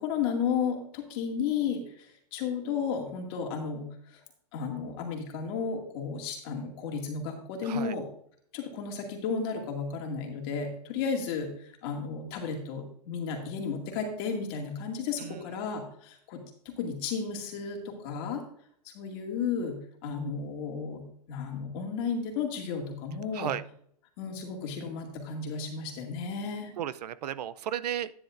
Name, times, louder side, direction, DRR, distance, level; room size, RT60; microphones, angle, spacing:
voice 1, 0.0-4.2 4.5-8.0 8.5-18.4 18.8-21.0 21.3-23.5 24.2-26.7, left 6 dB, 35° left, 1 dB, 2.2 m, -33 dB
voice 2, 7.6-7.9 15.2-15.4 23.3-23.6 26.8-28.1, right 10 dB, 75° right, 16 dB, 0.6 m, -34 dB
10.5 x 9.9 x 2.6 m, 0.63 s
hypercardioid pair, 155°, 21 cm